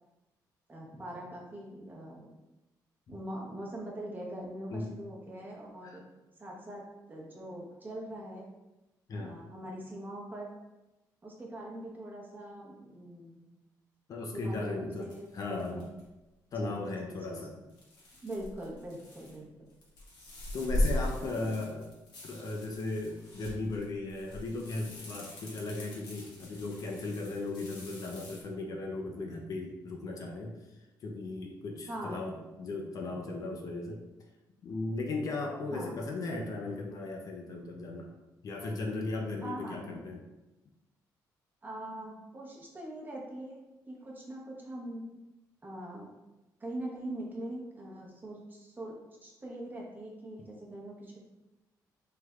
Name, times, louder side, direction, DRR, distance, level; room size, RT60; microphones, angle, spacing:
voice 1, 0.7-2.3 3.1-6.0 6.4-8.5 9.1-10.5 11.2-13.4 14.3-15.9 16.5-17.6 18.2-19.5 21.2-21.6 31.9-32.2 35.7-35.9 39.4-39.8 41.6-43.6 43.9-45.0 45.6-46.1 46.6-49.0 49.2-51.2, right 1 dB, 25° right, -3 dB, 0.8 m, -42 dB
voice 2, 14.1-15.1 15.3-15.8 16.5-17.6 20.5-21.9 22.2-30.6 31.0-34.0 34.6-38.1 38.4-40.2, left 2 dB, 55° left, 1 dB, 0.5 m, -37 dB
sound 1, 15.0-16.0 17.7-19.3 19.7-28.4, left 1 dB, 75° left, 1.1 m, -38 dB
3.2 x 3.1 x 2.4 m, 1.0 s
cardioid pair, 105°, 7 cm